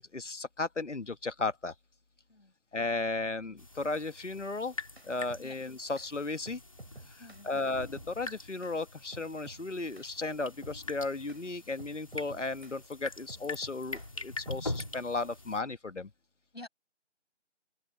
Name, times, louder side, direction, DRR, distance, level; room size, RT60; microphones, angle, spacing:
voice 1, 0.0-1.7 2.7-4.7 5.0-6.6 7.1-16.1, left 3 dB, 75° left, 1.5 m, -35 dB
sound 1, 3.6-15.6, left 2 dB, 30° left, 2.2 m, -44 dB
sound 2, 4.6-5.5 6.0-6.1 6.5-7.5 8.0-8.1 8.6-8.8 9.1-9.6 10.0-10.1 10.6-10.8 11.3-11.4 11.8-12.8 13.3-14.1 14.5-15.0, right 2 dB, 60° right, 5.1 m, -51 dB
voice 2, 7.2-7.5 16.5-16.7, left 2 dB, 60° left, 7.3 m, -48 dB
open air
figure-of-eight pair, 175°, 36 cm